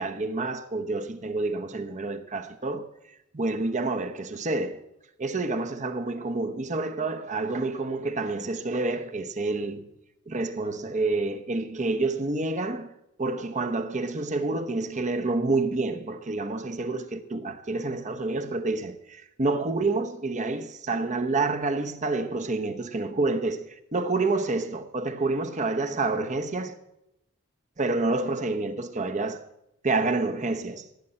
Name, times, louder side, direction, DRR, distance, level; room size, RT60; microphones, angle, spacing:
voice 1, 0.0-2.9 3.3-4.8 5.2-9.9 10.3-12.9 13.2-26.8 27.8-29.4 29.8-30.9, right 3 dB, 35° right, 0.9 m, -28 dB
15.5 x 6.8 x 8.6 m
head